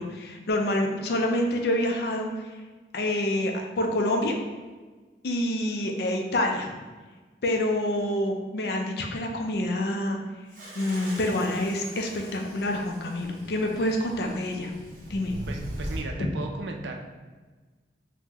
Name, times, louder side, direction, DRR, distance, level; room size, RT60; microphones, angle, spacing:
voice 1, 0.0-2.5 2.9-4.3 5.2-6.7 7.4-10.2 10.7-14.7 15.1-15.3 16.2-16.3, left 1 dB, 65° left, 2 dB, 0.4 m, -27 dB
sound 1, 10.5-16.0, equal, 45° right, 0.6 m, -40 dB
voice 2, 15.5-17.0, right 2 dB, 85° right, 3 dB, 0.4 m, -36 dB
3.6 x 2.1 x 2.9 m, 1.3 s
head